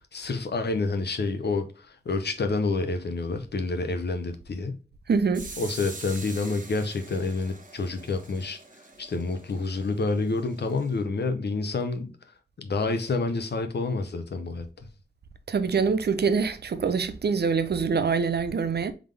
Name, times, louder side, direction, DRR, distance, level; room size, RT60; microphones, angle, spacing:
voice 1, 0.1-4.8 5.6-8.6 9.0-12.1 12.6-14.6, left 3 dB, 65° left, 0.8 m, -28 dB
voice 2, 5.1-5.5 15.5-18.9, right 5 dB, 65° right, 0.6 m, -25 dB
sound 1, 5.3-11.0, right 3 dB, 45° right, 1.0 m, -45 dB
3.7 x 3.6 x 3.3 m
cardioid pair, 50°, 18 cm